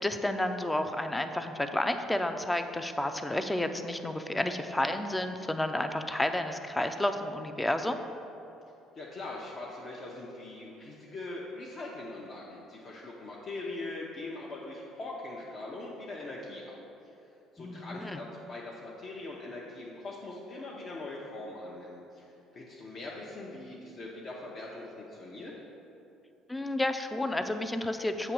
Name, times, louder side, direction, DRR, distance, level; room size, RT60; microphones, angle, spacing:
voice 1, 0.0-8.0 17.6-18.2 26.5-28.3, left 1 dB, 10° left, 7 dB, 0.5 m, -31 dB
voice 2, 8.9-16.8 17.5-25.5, left 2 dB, 45° left, -4 dB, 0.8 m, -41 dB
7.6 x 3.0 x 6.0 m, 2.8 s
hypercardioid pair, 55°, 0 cm